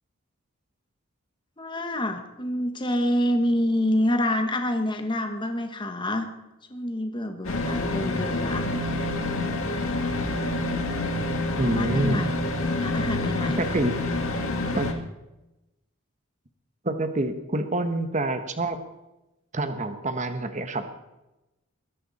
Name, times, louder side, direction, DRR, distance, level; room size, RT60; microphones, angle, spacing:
voice 1, 1.6-6.3 6.7-8.6 11.4-12.3 12.8-13.6, left 1 dB, 20° left, 5 dB, 1.4 m, -27 dB
sound 1, 7.4-14.9, left 2 dB, 70° left, 1.9 m, -27 dB
voice 2, 11.6-12.2 13.4-13.9 14.7-14.9 16.8-18.8 19.5-20.9, right 2 dB, 35° right, 8 dB, 1.2 m, -27 dB
22.5 x 10.5 x 4.2 m, 0.96 s
head